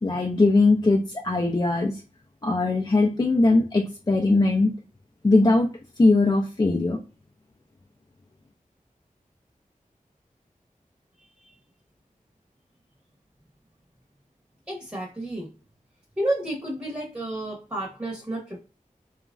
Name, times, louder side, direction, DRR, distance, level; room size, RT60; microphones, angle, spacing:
voice 1, 0.0-2.0 2.4-4.7 5.2-5.7 6.0-7.0, left 2 dB, 30° left, 1 dB, 0.4 m, -20 dB
voice 2, 14.7-15.5 16.2-18.6, right 1 dB, 15° right, -4 dB, 1.0 m, -31 dB
2.9 x 2.4 x 2.3 m, 0.34 s
cardioid pair, 45°, 14 cm